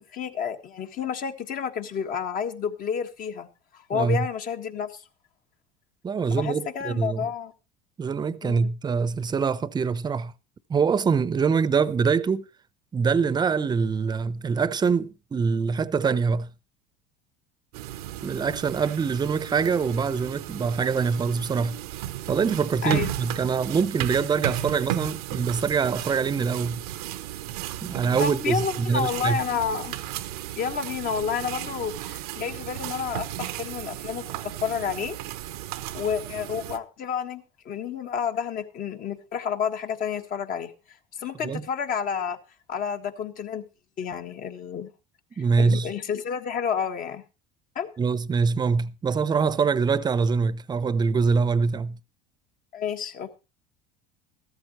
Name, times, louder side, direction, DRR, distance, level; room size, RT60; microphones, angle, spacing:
voice 1, 0.0-3.5 3.7-5.0 6.3-7.5 8.4-8.7 22.8-23.2 28.2-29.9 30.5-35.2 35.9-40.7 41.2-42.4 42.7-43.6 44.0-44.9 45.6-47.2 47.7-47.9 52.7-53.4, left 7 dB, 50° left, 1.6 m, -30 dB
voice 2, 3.9-4.3 6.0-7.3 8.0-10.3 10.7-12.5 12.9-16.5 18.2-21.8 22.3-26.8 27.8-29.4 41.4-41.7 45.4-45.9 48.0-52.0, right 5 dB, 20° right, 0.7 m, -24 dB
sound 1, 17.7-36.8, right 14 dB, 85° right, 0.9 m, -35 dB
14.5 x 13.5 x 3.0 m
supercardioid pair, 100°, 19 cm